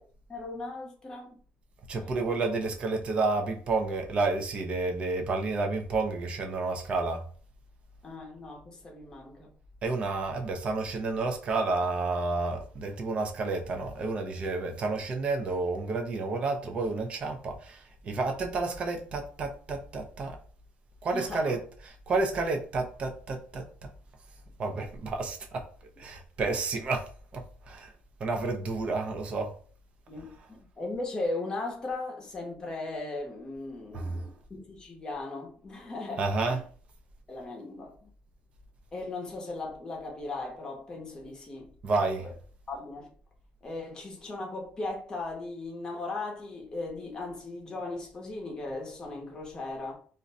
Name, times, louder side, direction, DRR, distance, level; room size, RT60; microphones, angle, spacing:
voice 1, 0.3-1.4 2.0-2.2 8.0-9.5 21.1-21.5 30.1-36.6 37.3-38.1 38.9-42.0 42.7-43.1 43.6-50.0, left 2 dB, 20° left, 0.8 m, -38 dB
voice 2, 1.9-7.2 9.8-20.4 21.0-23.9 24.6-25.6 26.0-27.9 28.2-29.5 33.9-34.2 36.2-36.6 41.8-42.3, right 3 dB, 35° right, 0.5 m, -30 dB
2.5 x 2.2 x 3.9 m
cardioid pair, 160°, 4 cm